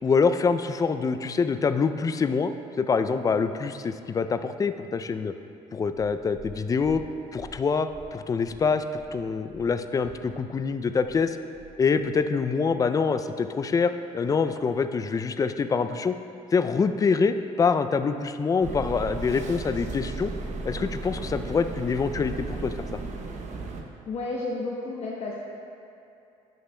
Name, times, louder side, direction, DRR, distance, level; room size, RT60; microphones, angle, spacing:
voice 1, 0.0-2.5 2.8-5.3 5.7-7.0 7.3-11.4 11.8-16.1 16.5-20.3 20.6-22.7, left 5 dB, 25° left, 10 dB, 0.3 m, -25 dB
Purr, 5.8-12.2 12.9-13.0, right 2 dB, 10° right, 1.6 m, -49 dB
sound 1, 18.6-23.8, right 3 dB, 55° right, 0.8 m, -35 dB
voice 2, 24.1-25.4, left 2 dB, 45° left, -4 dB, 0.8 m, -31 dB
11.0 x 6.6 x 2.2 m, 2.7 s
supercardioid pair, 85°, 15 cm